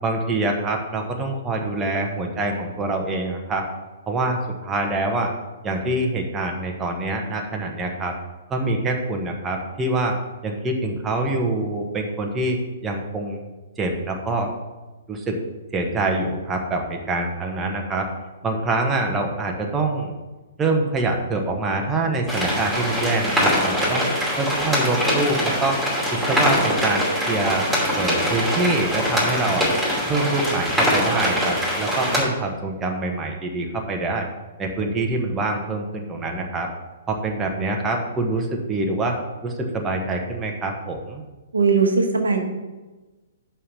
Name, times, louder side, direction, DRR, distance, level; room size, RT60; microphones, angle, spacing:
voice 1, 0.0-3.7 4.1-5.3 5.6-8.1 8.5-10.1 10.4-13.4 13.8-14.5 15.1-15.4 15.7-18.1 18.4-20.1 20.6-24.0 24.4-25.8 26.1-27.7 27.9-29.7 30.0-34.3 34.6-36.7 37.1-41.2, right 2 dB, 15° right, 1 dB, 1.1 m, -25 dB
sound 1, 22.3-32.2, equal, ahead, 2.7 m, -23 dB
voice 2, 41.5-42.4, right 4 dB, 80° right, 3 dB, 1.2 m, -19 dB
5.7 x 5.6 x 6.8 m, 1.2 s
figure-of-eight pair, 120°, 0 cm